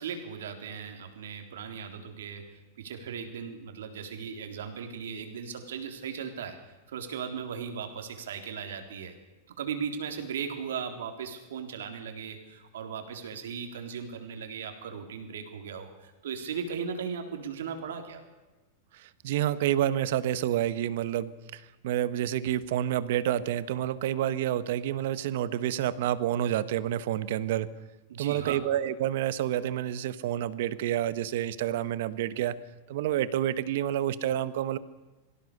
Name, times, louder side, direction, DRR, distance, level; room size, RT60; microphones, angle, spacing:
voice 1, 0.0-6.6 6.9-9.2 9.6-18.2 28.1-28.6, right 7 dB, 90° right, 6 dB, 3.7 m, -37 dB
voice 2, 18.9-27.7 28.2-32.6 32.9-34.8, right 11 dB, 65° right, 15 dB, 1.3 m, -29 dB
24.5 x 16.0 x 6.8 m, 1.2 s
supercardioid pair, 140°, 0 cm